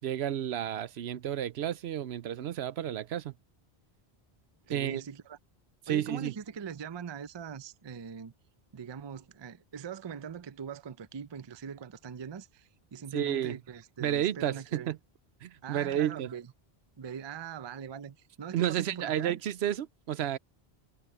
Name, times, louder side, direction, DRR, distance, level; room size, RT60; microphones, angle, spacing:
voice 1, 0.0-3.3 4.7-5.0 5.8-6.3 13.1-13.6 14.0-15.0 15.4-16.3 18.5-20.4, right 11 dB, 80° right, 0.9 m, -31 dB
voice 2, 4.7-5.4 5.9-8.3 8.7-14.9 15.6-16.5 17.0-19.4, right 7 dB, 35° right, 0.4 m, -42 dB
omnidirectional pair, 1.1 m